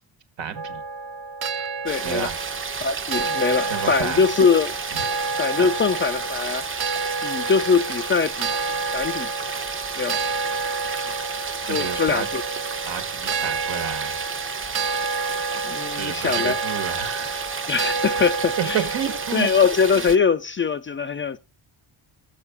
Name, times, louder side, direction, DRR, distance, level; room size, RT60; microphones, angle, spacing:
voice 1, 0.4-0.8 2.0-2.4 3.6-4.2 5.6-5.7 11.7-12.3 12.9-14.2 15.9-17.4 18.2-18.3 18.7-19.5, right 8 dB, 75° right, 1.8 m, -30 dB
sound 1, 0.5-19.9, right 4 dB, 55° right, 1.0 m, -30 dB
voice 2, 1.8-2.3 2.8-4.8 5.4-6.7 7.2-8.5 8.9-9.3 10.0-10.2 11.7-12.4 15.6-16.6 17.7-18.8 19.3-21.4, left 5 dB, 30° left, 0.4 m, -22 dB
sound 2, 1.9-20.2, right 5 dB, 30° right, 0.8 m, -32 dB
6.7 x 5.4 x 7.1 m
cardioid pair, 105°, 45 cm